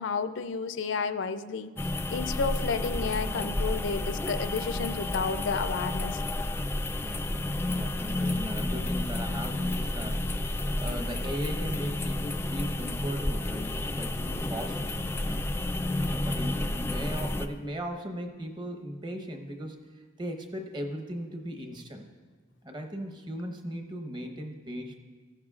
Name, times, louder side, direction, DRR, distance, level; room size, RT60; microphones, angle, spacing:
voice 1, 0.0-1.7 2.1-6.2, left 5 dB, 75° left, 11 dB, 0.5 m, -31 dB
sound 1, 1.8-17.5, left 1 dB, 10° left, 0.3 m, -31 dB
voice 2, 7.0-10.4 10.8-15.4 16.1-19.8 20.2-22.1 22.6-25.0, equal, 25° right, 4 dB, 1.0 m, -38 dB
15.5 x 11.0 x 2.4 m, 1.4 s
head